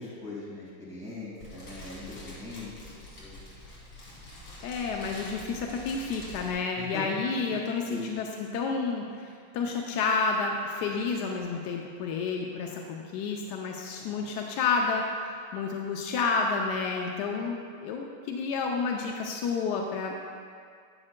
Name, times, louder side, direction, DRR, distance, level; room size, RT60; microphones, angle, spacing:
voice 1, 0.0-2.7 3.2-3.4 6.8-7.0 7.9-8.1 14.0-14.2, left 2 dB, 5° right, -8 dB, 1.8 m, -41 dB
Fire, 1.4-6.5, left 1 dB, 60° left, 2.5 m, -46 dB
voice 2, 4.6-9.3 9.5-20.1, left 4 dB, 75° left, 1 dB, 1.0 m, -30 dB
11.0 x 8.6 x 2.2 m, 2.2 s
omnidirectional pair, 2.3 m